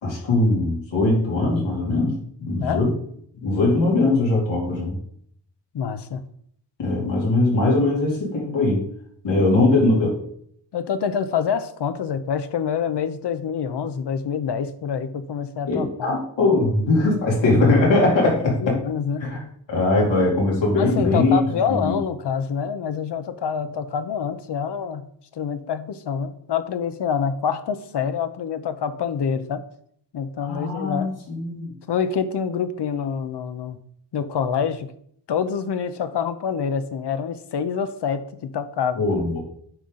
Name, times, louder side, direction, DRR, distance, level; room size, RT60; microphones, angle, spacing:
voice 1, 0.0-2.9 3.4-5.0 6.8-8.8 9.2-10.2 15.7-18.8 19.2-19.4 19.7-21.4 21.7-22.0 30.4-31.7 38.9-39.4, left 2 dB, 85° left, -3 dB, 3.2 m, -20 dB
voice 2, 5.7-6.2 9.3-9.6 10.7-16.2 18.4-19.4 20.8-29.7 30.1-31.2 31.9-33.8 34.1-34.9 35.3-39.0, left 7 dB, 65° left, 12 dB, 0.9 m, -26 dB
9.1 x 5.7 x 3.8 m, 0.66 s
cardioid pair, 80°, 44 cm